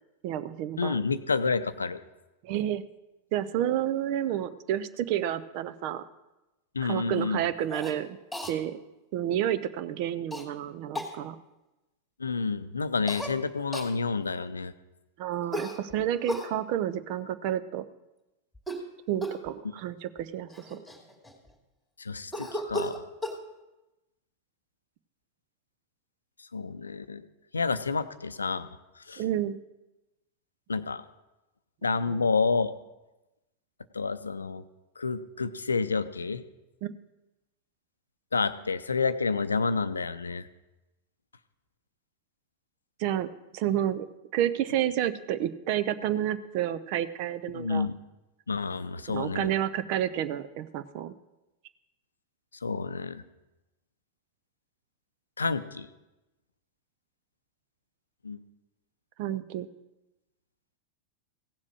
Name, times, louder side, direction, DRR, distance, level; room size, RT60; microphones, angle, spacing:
voice 1, 0.2-0.9 2.4-2.8 3.3-6.0 6.8-8.2 8.5-8.8 9.1-11.4 15.2-17.8 19.1-20.8 29.2-29.6 32.1-32.2 36.8-36.9 43.0-44.1 44.3-47.9 49.1-51.1 59.2-59.7, right 11 dB, 45° right, 13 dB, 0.6 m, -30 dB
voice 2, 0.8-2.0 6.7-7.4 12.2-14.7 22.0-23.0 26.5-27.3 27.5-28.7 29.0-29.2 30.7-31.0 31.8-32.7 33.9-34.6 35.0-36.4 38.3-40.5 47.5-48.0 48.5-49.5 52.6-53.2 55.4-55.9 58.2-58.4, left 4 dB, 75° left, 12 dB, 0.6 m, -29 dB
Cough, 7.7-7.9 8.3-8.5 10.3-10.4 10.9-11.1 13.1-13.3 13.7-13.9 15.5-16.5 18.5-18.9 19.2-19.5 20.2-20.3 20.5-21.5 22.3-23.4, equal, ahead, 2.4 m, -35 dB
16.0 x 7.4 x 6.3 m, 1.0 s
figure-of-eight pair, 90°, 0 cm